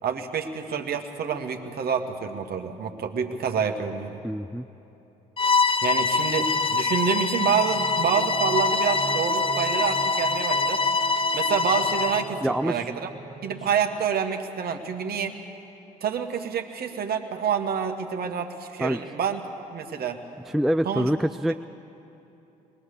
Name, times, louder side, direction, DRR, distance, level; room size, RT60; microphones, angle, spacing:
voice 1, 0.0-4.2 5.8-10.8 11.3-13.1 13.4-15.3 16.0-19.4 19.7-20.2 20.9-21.1, right 7 dB, 50° right, 5 dB, 1.8 m, -27 dB
voice 2, 4.2-4.7 12.4-12.9 18.8-19.0 20.5-21.6, equal, ahead, 10 dB, 0.4 m, -25 dB
Bowed string instrument, 5.4-12.3, left 4 dB, 25° left, 0.8 m, -24 dB
sound 1, 6.3-14.3, right 3 dB, 30° right, 1.1 m, -44 dB
Wind instrument woodwind instrument, 8.1-12.8, right 13 dB, 70° right, 0.8 m, -36 dB
21.0 x 19.0 x 6.8 m, 3.0 s
hypercardioid pair, 55°, 20 cm